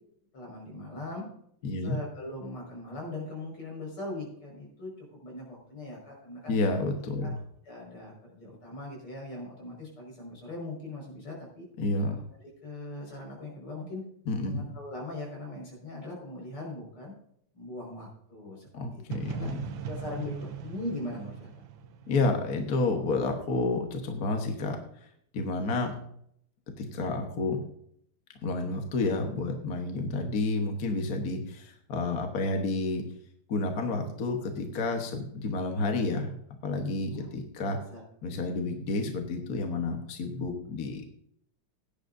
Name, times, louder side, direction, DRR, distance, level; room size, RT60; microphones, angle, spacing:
voice 1, 0.3-1.3 1.8-6.5 7.2-7.3 7.6-11.7 12.1-12.2 12.6-14.0 14.4-17.1 17.5-19.5 19.9-21.5 37.2-37.3 37.9-38.0, left 2 dB, 80° left, -2 dB, 6.1 m, -40 dB
voice 2, 1.6-1.9 6.5-7.3 11.8-12.2 14.3-14.7 18.7-19.5 22.1-24.8 25.3-26.0 26.8-27.6 28.4-33.0 33.5-36.4 36.6-37.8 38.2-41.1, left 3 dB, 50° left, 4 dB, 1.5 m, -30 dB
sound 1, 19.1-23.0, right 7 dB, 70° right, 1.4 m, -40 dB
16.5 x 10.5 x 2.6 m, 0.69 s
omnidirectional pair, 2.4 m